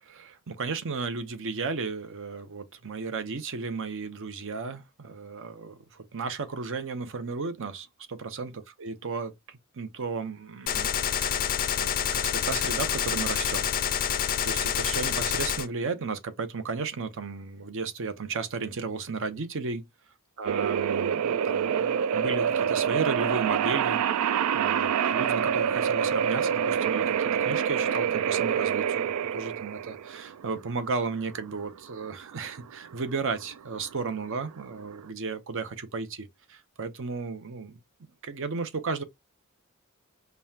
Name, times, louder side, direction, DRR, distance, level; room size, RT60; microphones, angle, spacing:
voice 1, 0.0-8.5 8.8-10.9 11.2-13.7 14.0-14.2 14.4-19.9 20.4-37.8 38.2-39.0, right 4 dB, 60° right, 0.7 m, -34 dB
Gunshot gunfire, 10.7-15.7, left 8 dB, 40° left, 0.4 m, -27 dB
sound 1, 20.5-35.0, right 8 dB, 90° right, 0.4 m, -27 dB
5.4 x 2.3 x 2.7 m
head